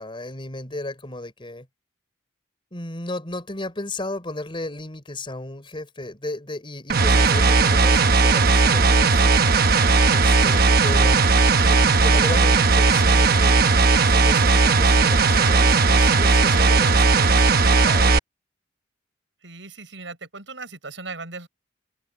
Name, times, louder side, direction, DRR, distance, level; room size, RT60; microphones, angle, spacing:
voice 1, 0.0-1.7 2.7-9.6 10.1-11.3 11.6-13.8 14.1-18.2, left 2 dB, 30° left, 3.6 m, -34 dB
sound 1, 6.9-18.2, right 4 dB, 55° right, 1.1 m, -17 dB
voice 2, 11.4-11.7 12.5-12.7 19.4-21.5, right 4 dB, 80° right, 7.2 m, -39 dB
open air
head